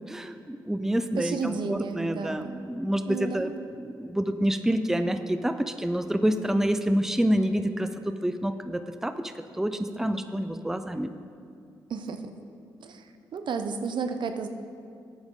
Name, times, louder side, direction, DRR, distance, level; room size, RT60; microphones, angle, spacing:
voice 1, 0.1-11.1, equal, 5° right, 9 dB, 0.5 m, -28 dB
voice 2, 1.2-2.6 3.1-3.7 11.9-12.3 12.8-13.0 13.3-14.5, right 5 dB, 65° right, 8 dB, 0.7 m, -32 dB
12.5 x 8.7 x 3.8 m, 2.4 s
cardioid pair, 70°, 8 cm